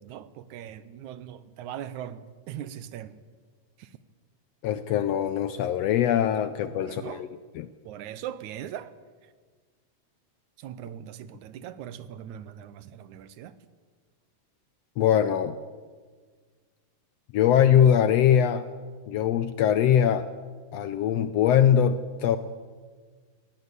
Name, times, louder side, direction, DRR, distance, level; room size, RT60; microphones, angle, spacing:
voice 1, 0.0-3.2 3.8-4.0 6.8-7.2 7.8-8.9 9.2-9.3 10.6-13.6, right 10 dB, 75° right, 14 dB, 2.2 m, -40 dB
voice 2, 4.6-7.3 7.6-7.7 15.0-15.5 17.3-18.7 19.1-20.2 20.7-22.4, left 9 dB, 75° left, 12 dB, 1.5 m, -22 dB
19.0 x 16.5 x 8.2 m, 1.5 s
omnidirectional pair, 3.5 m